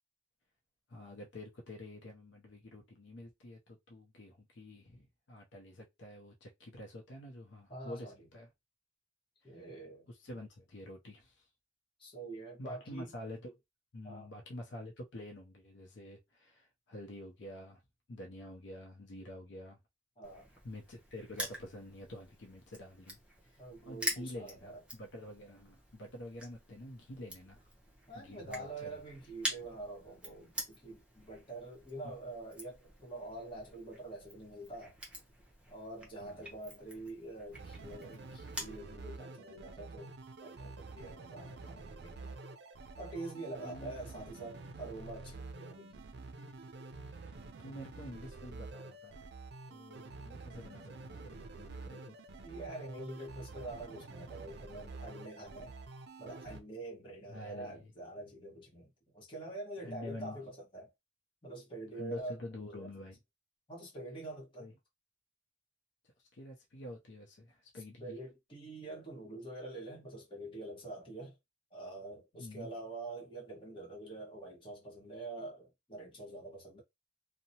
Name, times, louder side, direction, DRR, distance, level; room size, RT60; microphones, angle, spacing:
voice 1, 0.9-8.5 10.1-11.4 12.6-13.5 13.9-17.8 18.1-19.8 20.6-27.7 28.1-29.0 32.0-32.1 36.2-36.5 43.6-43.9 47.1-49.2 49.7-52.2 57.3-57.9 59.8-60.4 61.9-63.2 64.6-64.7 66.3-68.2 72.3-72.7, left 1 dB, 70° left, 0.6 m, -48 dB
voice 2, 7.7-8.3 9.4-10.1 12.0-13.1 14.0-14.3 20.2-20.5 23.6-24.8 28.1-35.0 35.7-40.2 40.4-42.4 43.0-46.0 52.4-55.7 56.2-60.9 61.4-62.4 63.7-64.7 68.0-71.4 71.7-76.8, right 2 dB, 30° left, 1.1 m, -46 dB
Crushing, 20.2-38.8, equal, 5° right, 0.7 m, -46 dB
sound 1, 37.5-56.6, right 3 dB, 60° right, 0.4 m, -48 dB
2.7 x 2.1 x 2.8 m
head